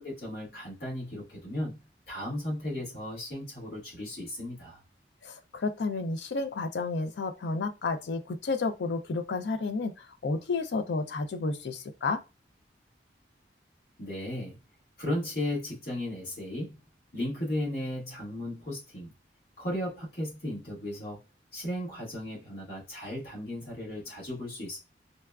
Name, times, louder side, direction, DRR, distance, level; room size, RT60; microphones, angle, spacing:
voice 1, 0.0-1.8 2.1-4.8 14.0-14.6 15.0-16.8 17.1-19.1 19.6-21.2 21.5-24.8, left 1 dB, 60° left, 1.5 m, -35 dB
voice 2, 5.2-12.2, left 3 dB, 75° left, 0.4 m, -31 dB
3.9 x 2.3 x 2.3 m
head